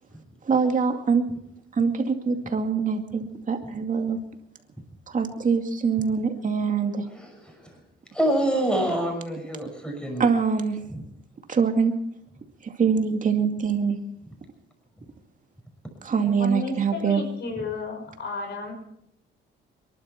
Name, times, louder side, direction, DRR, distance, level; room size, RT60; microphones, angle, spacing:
voice 1, 0.4-1.2 1.7-4.2 5.1-7.1 10.2-10.8 11.5-11.9 12.6-14.0 16.0-17.2, right 5 dB, 40° right, 5 dB, 2.3 m, -24 dB
voice 2, 7.1-7.7 8.1-10.3 10.9-11.0, right 1 dB, 5° left, 3 dB, 6.0 m, -26 dB
voice 3, 16.4-18.7, left 3 dB, 60° left, 2 dB, 6.2 m, -32 dB
27.5 x 11.5 x 4.5 m, 0.74 s
cardioid pair, 90°, 20 cm